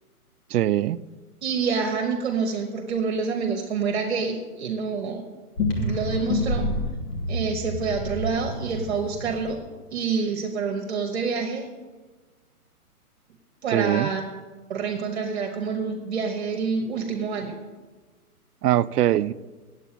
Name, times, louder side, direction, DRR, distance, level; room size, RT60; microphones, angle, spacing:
voice 1, 0.5-1.0 13.7-14.1 18.6-19.3, right 13 dB, 85° right, 17 dB, 0.5 m, -22 dB
voice 2, 1.4-5.2 5.8-6.7 7.3-9.6 9.9-11.7 13.6-14.2 14.7-17.5, right 5 dB, 45° right, 3 dB, 1.0 m, -27 dB
sound 1, 5.6-9.6, left 1 dB, 90° left, 2.1 m, -28 dB
8.4 x 8.1 x 7.4 m, 1.3 s
hypercardioid pair, 175°, 46 cm